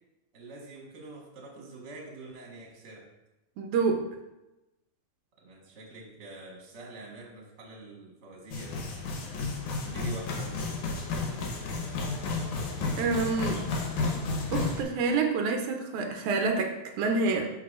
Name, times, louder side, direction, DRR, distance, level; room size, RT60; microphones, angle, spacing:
voice 1, 0.3-3.1 5.4-9.0 9.8-10.7, right 2 dB, 45° right, -2 dB, 1.8 m, -45 dB
voice 2, 3.6-4.0 13.0-13.6 14.5-17.5, right 4 dB, 85° right, 3 dB, 2.1 m, -27 dB
sound 1, 8.5-14.8, left 3 dB, 85° left, 2.6 m, -32 dB
11.5 x 4.2 x 2.4 m, 0.98 s
omnidirectional pair, 3.4 m